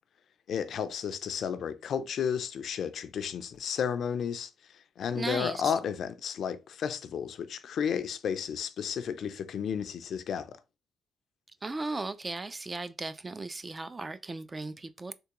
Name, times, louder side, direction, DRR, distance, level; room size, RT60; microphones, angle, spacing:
voice 1, 0.5-4.5 5.0-10.5, left 7 dB, 65° left, 0.4 m, -32 dB
voice 2, 5.1-5.7 11.6-15.1, right 3 dB, 25° right, 0.3 m, -36 dB
3.4 x 2.8 x 2.9 m
cardioid pair, 90°, 0 cm